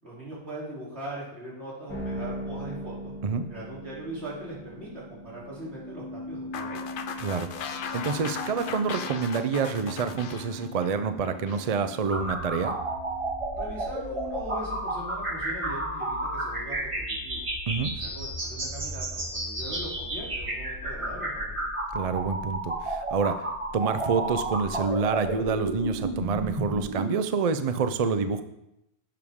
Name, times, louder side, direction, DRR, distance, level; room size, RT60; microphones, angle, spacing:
voice 1, 0.0-3.1 3.5-6.8 13.5-17.5 17.9-21.7, right 1 dB, 70° right, -7 dB, 3.6 m, -40 dB
sound 1, 1.9-14.2, equal, 10° left, 2.0 m, -41 dB
sound 2, 6.5-11.7, left 6 dB, 55° left, 0.7 m, -37 dB
voice 2, 7.2-12.8 17.7-17.9 21.9-23.5 23.7-28.4, right 5 dB, 50° right, 10 dB, 0.5 m, -27 dB
sound 3, 12.1-27.0, right 1 dB, 30° right, 1.4 m, -32 dB
11.0 x 6.8 x 3.6 m, 0.85 s
omnidirectional pair, 1.2 m